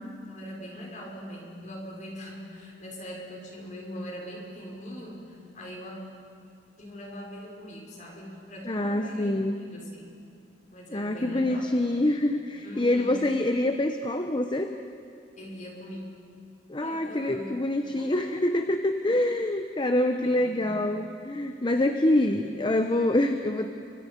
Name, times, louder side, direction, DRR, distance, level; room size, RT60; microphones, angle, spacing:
voice 1, 0.0-6.0 6.8-9.3 9.7-10.1 10.7-12.1 12.6-13.3 15.4-16.0 16.8-17.5 18.0-18.3 20.2-20.9 22.1-22.3, equal, 45° left, -1 dB, 5.2 m, -41 dB
voice 2, 8.6-9.6 10.9-14.7 16.7-23.7, left 1 dB, 25° left, 6 dB, 0.9 m, -26 dB
29.0 x 24.5 x 5.3 m, 2.6 s
head